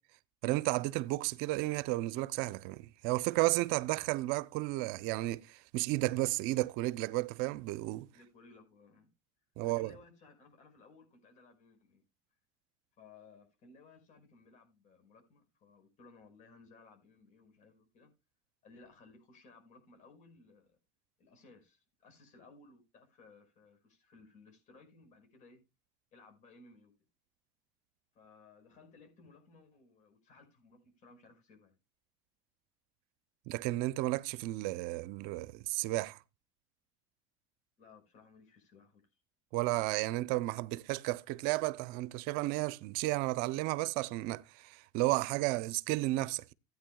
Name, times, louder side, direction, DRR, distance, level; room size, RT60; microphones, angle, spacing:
voice 1, 0.4-8.1 9.6-9.9 33.5-36.2 39.5-46.5, right 19 dB, 70° right, 0.6 m, -33 dB
voice 2, 8.1-9.1 9.6-12.0 13.0-18.1 18.6-20.8 21.2-25.6 26.1-26.9 28.1-31.8 37.8-39.1, left 3 dB, 50° left, 5.1 m, -60 dB
16.0 x 9.2 x 2.3 m
supercardioid pair, 110°, 16 cm